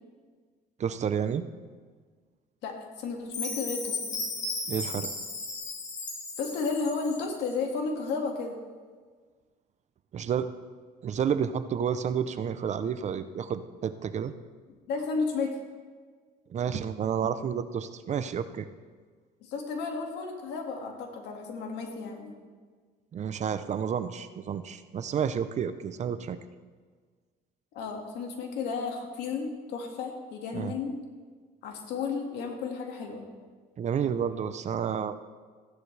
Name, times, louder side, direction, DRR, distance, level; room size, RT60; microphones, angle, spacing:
voice 1, 0.8-1.4 4.7-5.1 10.1-10.5 11.0-14.3 16.5-18.7 23.1-26.4 30.5-30.7 33.8-35.2, right 8 dB, 45° right, 11 dB, 0.7 m, -30 dB
voice 2, 2.6-4.2 6.4-8.6 14.9-15.6 19.4-22.3 27.7-31.0 31.6-33.3, left 4 dB, 85° left, 2 dB, 2.1 m, -33 dB
Chime, 3.3-7.4, left 3 dB, 45° left, 2.2 m, -35 dB
15.0 x 11.5 x 3.4 m, 1.5 s
cardioid pair, 110°, 17 cm